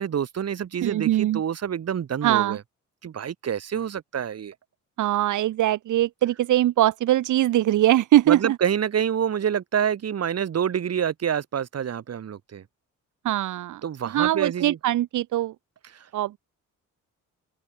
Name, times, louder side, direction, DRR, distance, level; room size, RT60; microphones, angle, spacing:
voice 1, 0.0-2.6 3.0-4.5 8.3-12.6 13.8-14.8, right 8 dB, 55° right, 5.0 m, -27 dB
voice 2, 0.8-1.4 2.2-2.6 5.0-8.6 13.2-13.8 14.1-15.5 16.1-16.4, right 13 dB, 75° right, 2.0 m, -22 dB
open air
cardioid pair, 90°, 30 cm